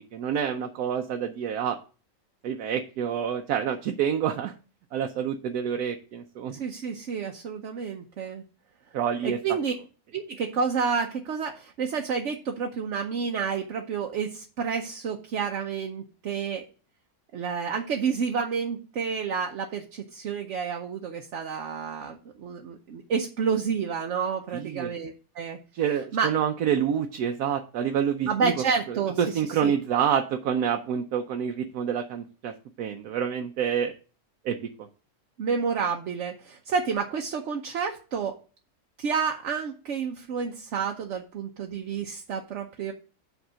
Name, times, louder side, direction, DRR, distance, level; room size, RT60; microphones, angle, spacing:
voice 1, 0.1-1.8 2.4-4.5 4.9-6.6 8.9-9.4 24.5-24.9 25.7-28.5 28.9-32.5 32.8-33.9 34.4-34.6, right 8 dB, 85° right, 5 dB, 1.2 m, -27 dB
voice 2, 6.6-8.4 9.2-9.7 10.1-16.6 17.3-25.6 26.1-26.3 28.3-29.2 29.6-29.7 35.4-38.4 39.0-42.9, right 6 dB, 60° right, 3 dB, 1.0 m, -29 dB
8.0 x 3.6 x 6.1 m, 0.37 s
omnidirectional pair, 1.6 m